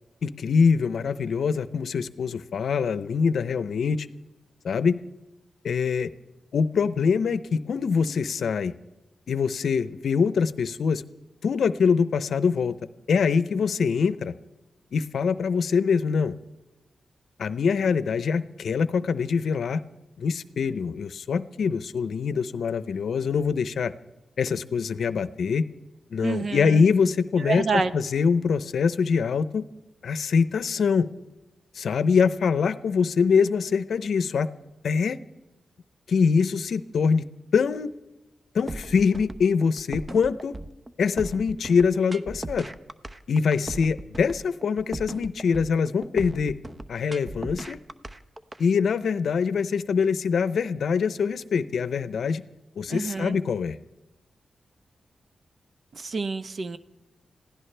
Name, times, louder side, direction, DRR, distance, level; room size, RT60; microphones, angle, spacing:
voice 1, 0.2-4.1 4.6-5.0 5.6-6.1 6.5-8.7 9.3-11.0 11.4-12.8 13.1-14.3 14.9-16.3 17.4-19.8 20.2-23.9 24.4-25.7 26.1-29.7 30.0-31.1 31.8-34.5 34.8-35.2 36.1-37.3 37.5-37.9 38.5-40.6 41.0-42.7 43.3-46.6 46.9-47.8 48.6-52.4 52.8-53.8, left 5 dB, 75° left, 15 dB, 0.6 m, -24 dB
voice 2, 26.2-26.8 27.4-27.9 52.9-53.4 55.9-56.8, right 4 dB, 60° right, 11 dB, 0.9 m, -28 dB
sound 1, 38.7-48.6, right 1 dB, 30° right, 0.8 m, -37 dB
26.0 x 16.5 x 3.4 m, 1.1 s
cardioid pair, 50°, 0 cm